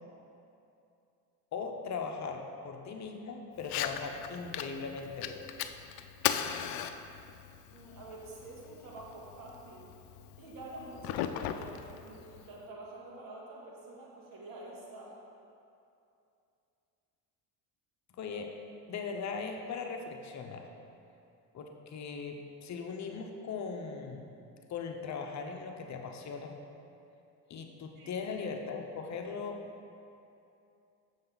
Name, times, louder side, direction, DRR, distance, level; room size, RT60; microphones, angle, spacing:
voice 1, 1.5-5.5 18.2-18.6 18.9-20.7 21.5-24.3 24.7-26.6 27.5-29.7, left 5 dB, 50° left, 4 dB, 0.8 m, -39 dB
Fire, 3.6-12.6, left 10 dB, 75° left, 0.5 m, -38 dB
voice 2, 7.7-9.9 10.4-15.2 28.0-28.2, right 2 dB, 65° right, -4 dB, 2.0 m, -47 dB
7.5 x 6.9 x 4.0 m, 2.7 s
cardioid pair, 90°, 36 cm